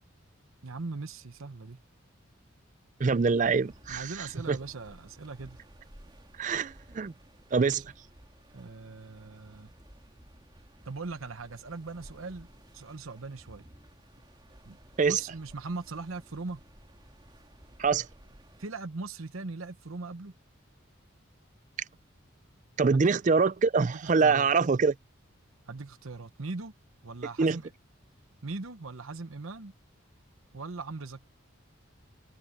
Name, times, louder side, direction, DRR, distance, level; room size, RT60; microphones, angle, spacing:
voice 1, 0.6-1.8 3.9-5.6 7.6-7.8 8.5-9.7 10.8-12.5 12.7-13.7 14.7-14.8 15.0-16.6 18.6-20.3 22.9-23.1 23.8-24.5 25.7-26.7 27.0-27.7 28.4-29.7 30.5-31.2, right 3 dB, 85° right, 1.0 m, -40 dB
sound 1, 3.0-18.7, right 1 dB, 20° right, 2.5 m, -55 dB
voice 2, 3.0-4.1 4.5-4.6 6.4-7.1 7.5-7.8 15.0-15.2 17.8-18.1 22.8-24.9 27.4-27.6, right 4 dB, 35° right, 0.4 m, -24 dB
head